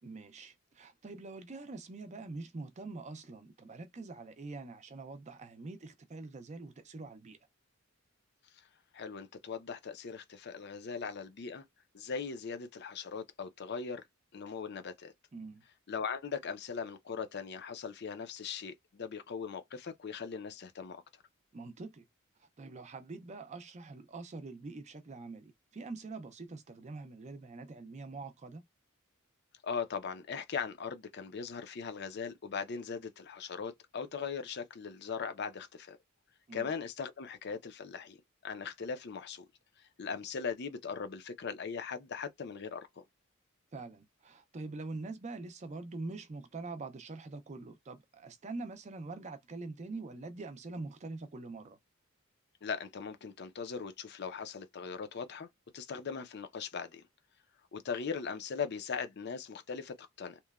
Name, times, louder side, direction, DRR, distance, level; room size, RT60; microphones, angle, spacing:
voice 1, 0.0-7.4 15.3-15.6 21.5-22.0 22.4-28.6 36.5-36.7 43.7-51.8, right 3 dB, 35° right, 0.4 m, -44 dB
voice 2, 8.9-11.6 11.9-14.0 14.3-15.1 15.9-21.0 29.6-36.0 36.5-38.2 38.4-39.5 40.0-43.0 52.6-55.5 55.7-57.0 57.7-60.4, left 6 dB, 55° left, 0.5 m, -39 dB
2.9 x 2.1 x 2.3 m
head